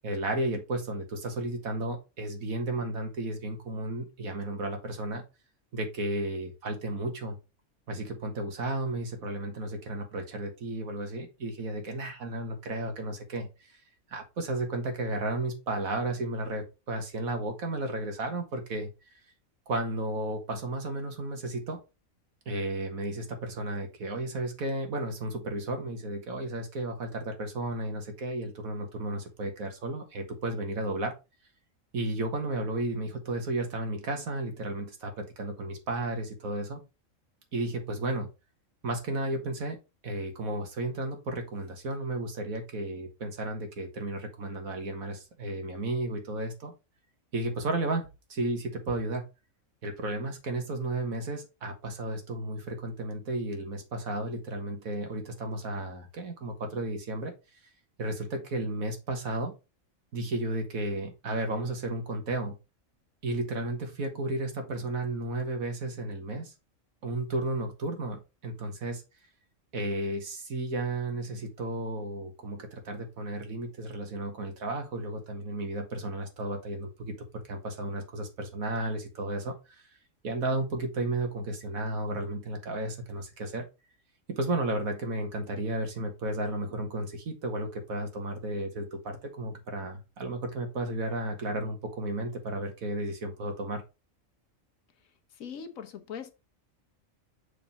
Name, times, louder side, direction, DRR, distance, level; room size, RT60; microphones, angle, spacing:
voice 1, 0.0-5.2 5.7-7.4 7.9-13.5 14.1-18.9 19.7-21.8 22.5-31.1 31.9-36.8 37.5-38.3 38.8-39.8 40.0-46.7 47.3-49.3 49.8-57.3 58.0-59.5 60.1-62.6 63.2-66.5 67.0-69.0 69.7-79.5 80.2-83.7 84.3-93.8, right 2 dB, 90° right, 2.0 m, -33 dB
voice 2, 95.4-96.3, left 7 dB, 75° left, 1.4 m, -40 dB
6.7 x 4.0 x 4.2 m
omnidirectional pair, 1.4 m